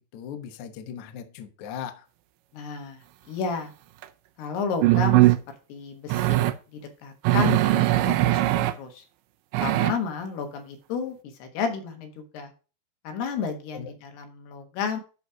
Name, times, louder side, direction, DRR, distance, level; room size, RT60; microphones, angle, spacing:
voice 1, 0.1-2.1 13.7-13.9, left 8 dB, 65° left, 2.0 m, -38 dB
voice 2, 2.5-3.7 4.4-5.3 5.7-6.4 6.7-9.0 9.6-12.5 13.0-15.0, left 5 dB, 85° left, 3.4 m, -32 dB
sound 1, 4.0-4.1 4.8-5.4 6.1-6.6 7.2-8.7 9.5-9.9, right 16 dB, 85° right, 1.9 m, -20 dB
11.0 x 4.2 x 4.9 m
omnidirectional pair, 4.6 m